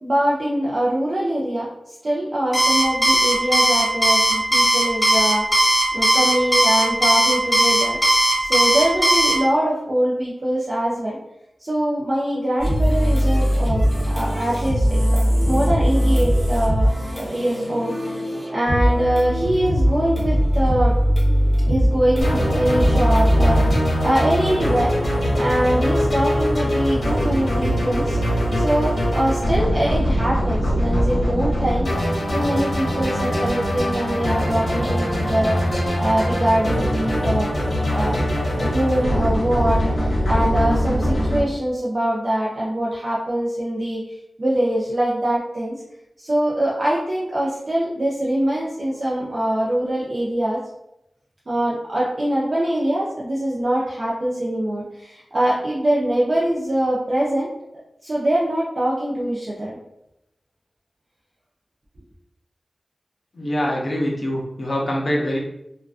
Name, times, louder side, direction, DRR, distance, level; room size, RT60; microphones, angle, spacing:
voice 1, 0.0-1.7 2.0-5.4 5.9-8.0 8.4-11.2 11.6-16.9 17.2-18.1 18.5-20.9 21.7-24.9 25.3-28.2 28.5-37.5 37.9-38.1 38.6-45.8 46.2-50.6 51.5-57.5 58.0-59.8, right 1 dB, 50° right, -6 dB, 0.4 m, -23 dB
Alarm, 2.5-9.3, right 1 dB, ahead, 0.5 m, -17 dB
sound 1, 12.6-23.7, equal, 15° right, 1.0 m, -20 dB
sound 2, 22.2-41.4, equal, 85° left, 0.7 m, -22 dB
voice 2, 63.3-65.4, equal, 55° left, -3 dB, 0.5 m, -24 dB
2.4 x 2.1 x 2.4 m, 0.83 s
wide cardioid pair, 75°, 0 cm